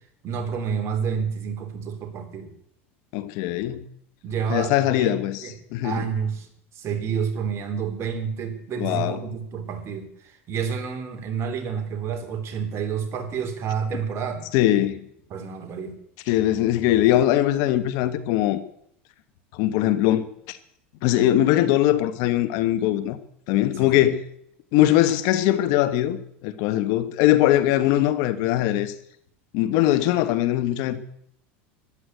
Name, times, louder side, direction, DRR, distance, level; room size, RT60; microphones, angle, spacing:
voice 1, 0.2-2.5 4.2-5.1 5.4-5.5 5.8-6.5 6.7-14.5 15.3-16.0 23.7-24.0, right 6 dB, 40° right, 3.6 m, -29 dB
voice 2, 3.1-3.8 4.5-6.1 8.8-9.2 14.5-15.0 16.3-18.6 19.5-20.6 21.0-23.2 23.5-24.2 24.7-28.9 29.5-31.0, left 13 dB, 65° left, 1.4 m, -21 dB
13.5 x 12.0 x 8.0 m
supercardioid pair, 110°, 7 cm